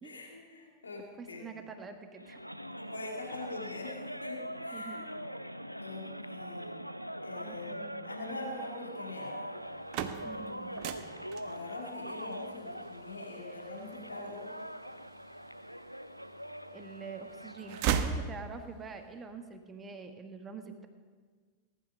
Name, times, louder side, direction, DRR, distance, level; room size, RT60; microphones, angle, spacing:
voice 1, 0.0-1.5 2.8-5.1 5.8-6.7 7.2-9.5 11.4-14.5, left 2 dB, 75° left, 0 dB, 2.3 m, -44 dB
voice 2, 1.2-2.4 4.7-5.0 7.4-8.1 10.2-10.7 16.7-20.9, right 5 dB, 20° right, 6 dB, 1.5 m, -45 dB
sound 1, 2.2-18.4, equal, 90° right, 0.5 m, -43 dB
sound 2, 9.6-15.6 16.1-17.0 17.3-18.9, right 8 dB, 45° right, 1.0 m, -37 dB
18.5 x 11.5 x 5.5 m, 1.5 s
figure-of-eight pair, 90°, 0 cm